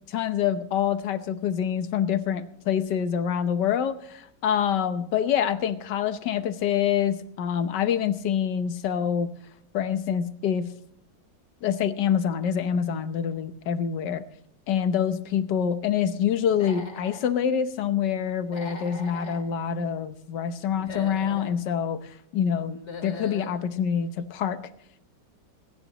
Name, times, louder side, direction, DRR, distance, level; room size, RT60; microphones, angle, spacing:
voice 1, 0.1-3.9 4.4-9.3 9.7-10.7 11.6-14.2 14.7-24.6, left 8 dB, 70° left, 11 dB, 1.5 m, -26 dB
Human voice / Animal, 16.5-17.3 18.4-19.4 20.7-21.5 22.7-23.5, left 3 dB, 40° left, 2.3 m, -39 dB
27.5 x 10.0 x 2.9 m, 0.71 s
omnidirectional pair, 2.0 m